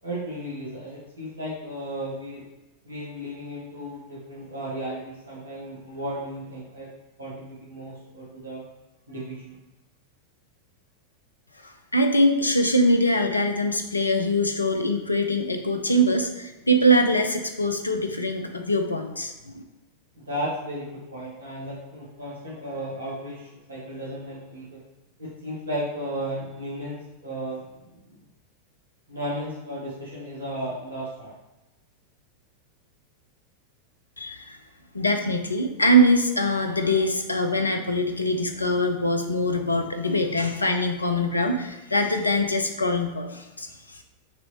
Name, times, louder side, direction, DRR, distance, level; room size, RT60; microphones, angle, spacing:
voice 1, 0.0-2.4 2.8-6.9 7.2-8.6 9.1-9.5 20.2-24.8 25.2-28.2 29.1-31.3, equal, 75° right, -6 dB, 1.2 m, -34 dB
voice 2, 11.6-19.6 34.2-34.6 34.9-44.0, equal, 80° left, 5 dB, 0.5 m, -23 dB
6.2 x 3.0 x 2.7 m, 1.0 s
figure-of-eight pair, 90°, 0 cm